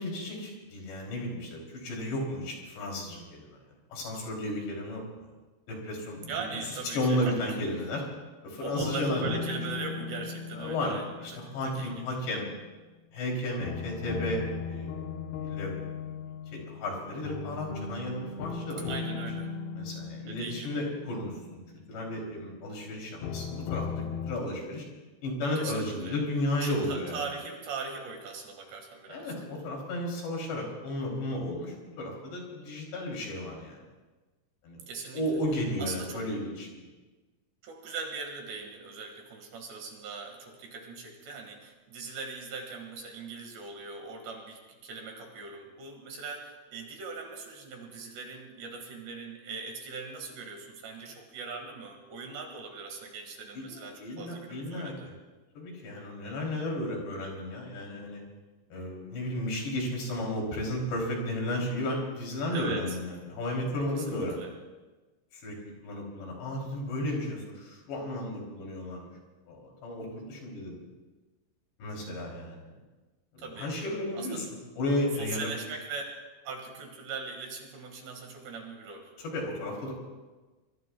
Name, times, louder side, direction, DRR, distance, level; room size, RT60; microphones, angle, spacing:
voice 1, 0.0-3.5 3.9-5.3 5.7-6.5 6.9-8.0 8.4-9.4 10.5-10.9 11.2-12.5 13.1-14.9 15.4-15.8 16.5-18.9 19.8-21.6 21.9-24.9 25.2-27.2 29.1-33.8 34.6-34.8 35.1-36.9 53.6-55.1 55.6-58.2 58.7-64.5 65.3-65.6 65.8-69.1 69.5-70.7 71.8-72.8 73.5-74.5 74.8-75.5 79.2-79.9, left 1 dB, 60° left, -1 dB, 5.2 m, -33 dB
sound 1, 6.2-7.4 8.8-12.8 13.6-22.4 23.2-24.4, left 5 dB, 75° left, 2.4 m, -38 dB
voice 2, 6.3-7.6 8.6-11.1 11.3-12.0 18.9-19.5 20.3-20.8 25.6-26.2 26.6-29.3 34.9-35.2 35.8-36.2 37.6-55.1 62.5-63.0 64.0-64.5 73.4-74.4 75.2-76.0 76.5-79.1, right 4 dB, 65° right, 2 dB, 3.7 m, -40 dB
24.0 x 23.5 x 2.3 m, 1.2 s
omnidirectional pair, 5.9 m